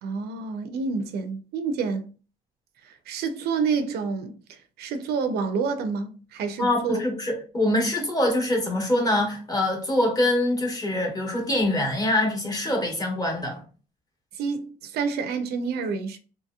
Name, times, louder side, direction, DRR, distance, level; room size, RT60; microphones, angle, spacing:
voice 1, 0.0-2.1 2.8-7.0 14.3-16.2, right 5 dB, 70° right, 0.5 m, -28 dB
voice 2, 6.6-13.6, left 1 dB, 20° left, 1.1 m, -24 dB
2.9 x 2.8 x 2.3 m
cardioid pair, 110°, 17 cm